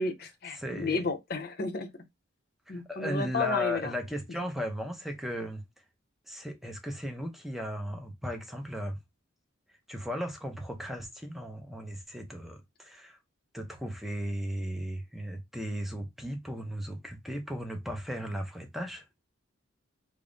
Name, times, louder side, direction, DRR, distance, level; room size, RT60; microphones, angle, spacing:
voice 1, 0.0-1.9 2.7-3.9, left 3 dB, 50° left, 0.6 m, -32 dB
voice 2, 0.5-1.1 2.7-5.6 6.3-9.0 9.9-13.2 13.5-19.0, equal, ahead, 0.6 m, -36 dB
3.5 x 2.0 x 3.7 m
head